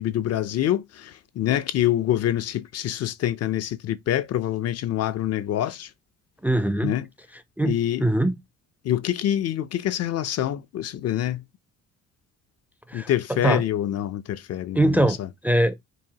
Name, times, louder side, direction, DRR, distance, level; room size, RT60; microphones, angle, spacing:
voice 1, 0.0-5.9 6.8-7.1 7.6-8.1 8.8-11.4 12.9-15.3, left 12 dB, 55° left, 0.5 m, -26 dB
voice 2, 6.4-6.9 7.6-7.7 8.0-8.4 12.9-13.1 13.4-13.6 14.7-15.2 15.4-15.7, right 1 dB, 5° right, 0.4 m, -21 dB
4.7 x 2.4 x 2.8 m
cardioid pair, 90°, 30 cm